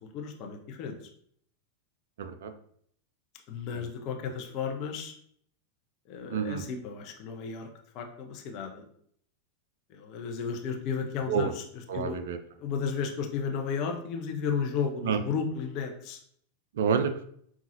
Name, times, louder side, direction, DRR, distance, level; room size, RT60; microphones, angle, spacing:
voice 1, 0.0-1.0 3.5-5.1 6.1-7.7 7.9-8.8 9.9-11.6 11.9-12.2 12.6-16.2, left 6 dB, 40° left, 3 dB, 0.6 m, -33 dB
voice 2, 2.2-2.5 3.7-3.9 6.3-6.6 11.3-11.5 11.9-12.4 15.0-15.2 16.7-17.2, right 6 dB, 60° right, 8 dB, 0.4 m, -28 dB
5.4 x 2.3 x 2.7 m, 0.65 s
figure-of-eight pair, 90°, 0 cm